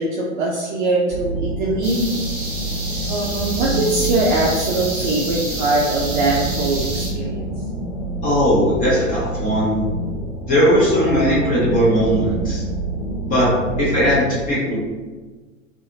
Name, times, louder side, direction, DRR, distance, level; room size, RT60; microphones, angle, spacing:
voice 1, 0.0-2.0 3.1-7.5, right 2 dB, 40° right, -3 dB, 0.4 m, -21 dB
sound 1, 1.1-14.2, right 1 dB, 5° right, 0.7 m, -27 dB
sound 2, 1.8-7.1, right 2 dB, 25° right, 1.0 m, -29 dB
voice 2, 8.2-9.7 10.5-12.6 13.2-13.5 13.8-14.8, equal, 20° left, -8 dB, 1.0 m, -18 dB
2.6 x 2.5 x 2.7 m, 1.3 s
figure-of-eight pair, 105°, 40 cm